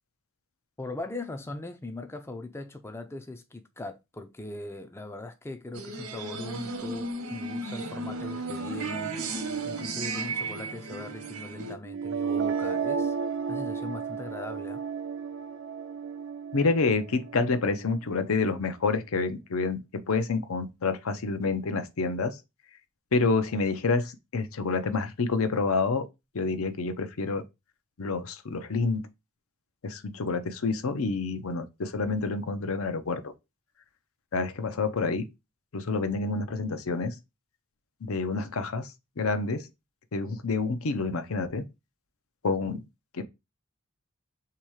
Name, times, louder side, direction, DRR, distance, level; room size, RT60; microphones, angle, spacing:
voice 1, 0.8-13.1 13.5-14.8, left 2 dB, 10° left, 0.3 m, -40 dB
sound 1, 5.7-11.8, right 3 dB, 75° right, 0.9 m, -34 dB
sound 2, 11.9-17.8, right 6 dB, 55° right, 0.4 m, -32 dB
voice 2, 16.5-22.4 23.1-26.0 26.3-27.4 28.0-29.1 29.8-33.3 34.3-35.3 35.7-37.2 38.0-39.7 40.1-41.6 42.4-42.8 43.1-43.2, left 4 dB, 70° left, 0.6 m, -28 dB
3.6 x 2.9 x 4.7 m
head